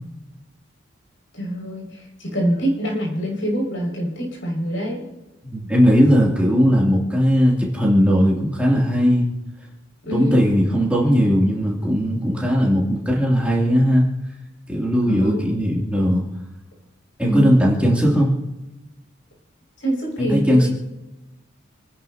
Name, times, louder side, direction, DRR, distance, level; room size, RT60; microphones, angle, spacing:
voice 1, 1.3-1.9 2.2-5.0 10.1-10.4 15.1-15.5 17.2-17.6 18.0-18.1 19.8-20.7, equal, 75° left, -2 dB, 6.1 m, -24 dB
voice 2, 5.4-9.3 10.1-14.0 14.7-16.2 17.2-18.3 20.2-20.7, equal, 5° right, -4 dB, 2.9 m, -18 dB
29.0 x 10.5 x 2.9 m, 1.0 s
head